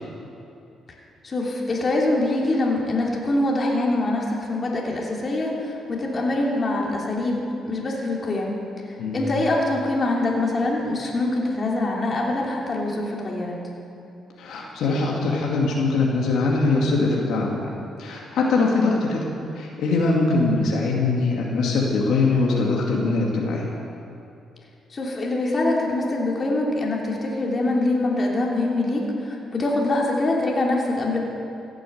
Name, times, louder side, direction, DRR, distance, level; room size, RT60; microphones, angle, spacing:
voice 1, 1.2-8.5 9.1-13.6 24.9-31.2, left 2 dB, 35° left, -2 dB, 3.0 m, -24 dB
voice 2, 14.4-17.6 18.0-19.2 19.6-23.7, left 3 dB, 75° left, -2 dB, 2.4 m, -22 dB
16.0 x 9.1 x 8.0 m, 2.8 s
cardioid pair, 90°, 0 cm